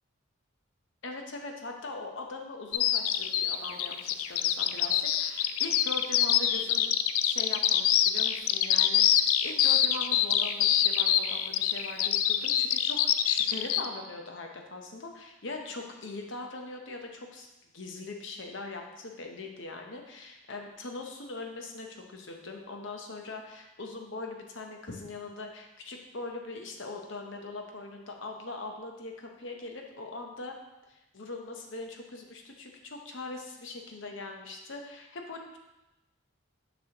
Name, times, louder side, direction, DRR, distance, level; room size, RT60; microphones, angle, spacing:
voice 1, 1.0-6.9 7.2-30.6 30.9-35.6, left 3 dB, 60° left, 2 dB, 0.8 m, -41 dB
Bird vocalization bird call bird song, 2.7-13.9, left 11 dB, 80° left, 0.3 m, -25 dB
6.1 x 6.1 x 2.9 m, 0.98 s
head